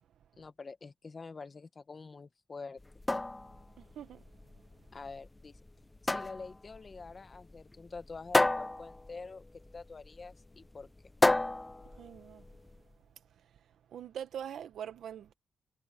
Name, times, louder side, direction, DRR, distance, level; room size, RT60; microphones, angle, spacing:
voice 1, 0.4-2.8 4.9-5.6 6.0-9.4 9.7-10.9, left 4 dB, 40° left, 1.5 m, -46 dB
sound 1, 2.8-12.8, left 2 dB, 20° left, 1.2 m, -33 dB
voice 2, 3.8-4.2 11.9-12.4 13.9-15.3, right 9 dB, 85° right, 1.6 m, -43 dB
cardioid pair, 75°, 0 cm